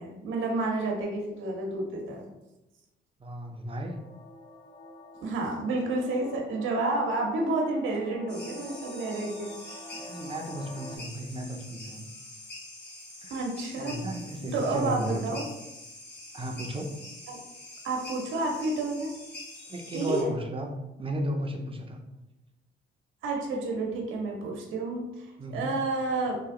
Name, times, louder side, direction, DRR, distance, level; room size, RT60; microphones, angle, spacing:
voice 1, 0.0-2.3 5.2-9.5 13.3-14.0 14.4-15.4 17.3-17.4 17.8-19.1 19.9-20.3 23.2-26.4, right 2 dB, 80° right, 0 dB, 0.8 m, -30 dB
voice 2, 3.2-4.0 9.9-12.1 13.2-13.4 13.8-15.4 16.3-16.9 19.7-20.7 21.0-22.0 25.4-25.7, equal, 25° right, 2 dB, 0.6 m, -34 dB
sound 1, 3.8-11.0, left 1 dB, 25° left, 0.5 m, -47 dB
sound 2, 8.3-20.2, left 2 dB, 60° left, 1.2 m, -45 dB
2.9 x 2.5 x 3.7 m, 0.96 s
cardioid pair, 90°, 20 cm